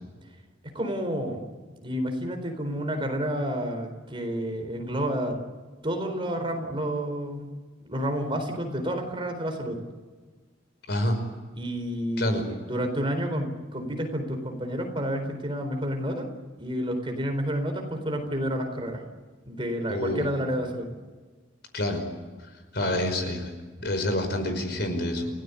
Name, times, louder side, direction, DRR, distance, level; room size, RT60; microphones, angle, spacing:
voice 1, 0.6-1.4 1.8-5.4 5.8-7.5 7.8-9.8 11.6-16.3 16.6-19.0 19.5-20.9, equal, 25° right, 5 dB, 4.2 m, -30 dB
voice 2, 10.9-11.2 12.2-12.5 19.9-20.3 21.7-22.0 22.7-23.5 23.8-25.3, left 1 dB, 55° left, 7 dB, 5.2 m, -27 dB
30.0 x 18.0 x 8.5 m, 1.4 s
head